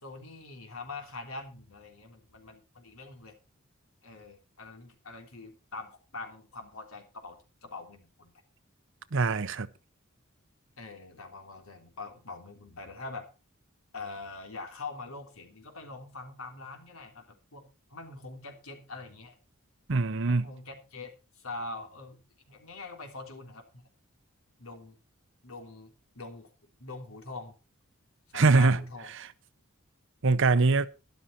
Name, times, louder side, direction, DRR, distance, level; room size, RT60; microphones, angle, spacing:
voice 1, 0.0-3.4 4.0-8.3 10.8-13.3 13.9-19.4 20.2-22.2 22.5-23.6 24.6-25.0 25.4-26.5 26.8-27.6 28.3-29.1, left 3 dB, 80° left, 3.5 m, -43 dB
voice 2, 9.1-9.7 19.9-20.5 28.3-28.8 30.2-30.9, right 3 dB, 60° right, 0.8 m, -23 dB
12.5 x 11.5 x 4.3 m
head